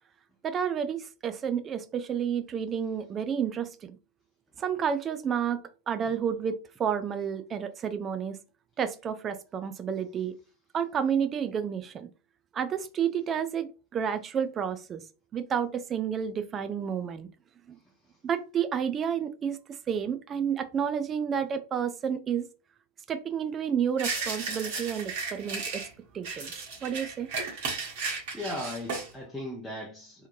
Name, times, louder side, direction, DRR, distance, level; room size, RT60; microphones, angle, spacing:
voice 1, 0.4-4.0 4.6-8.4 8.8-10.3 10.7-12.1 12.5-15.0 15.3-17.3 17.7-17.8 18.2-22.5 23.1-25.8 26.1-26.5 26.8-27.3, right 8 dB, 25° right, 0.3 m, -30 dB
sound 1, 24.0-25.9 26.2-29.1, right 4 dB, 50° right, 1.3 m, -34 dB
voice 2, 28.3-30.3, left 1 dB, ahead, 0.7 m, -37 dB
3.4 x 2.9 x 2.6 m
figure-of-eight pair, 90°, 0 cm